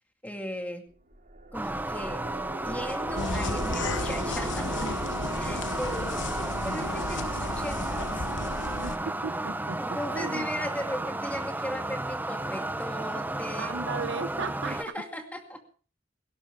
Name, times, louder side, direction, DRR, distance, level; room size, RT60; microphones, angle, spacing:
voice 1, 0.2-0.9 1.5-2.2 2.6-4.9 5.3-8.2 9.8-13.7 14.7-15.6, equal, 10° left, 4 dB, 2.3 m, -37 dB
sound 1, 0.9-12.3, right 1 dB, 45° right, 2.7 m, -43 dB
sound 2, 1.5-14.9, right 2 dB, 10° right, 0.6 m, -33 dB
sound 3, 3.1-9.0, left 3 dB, 65° left, 1.2 m, -34 dB
voice 2, 8.8-9.8 10.1-10.5 13.6-14.8, right 4 dB, 65° right, 10 dB, 0.9 m, -35 dB
18.5 x 16.5 x 3.6 m, 0.40 s
head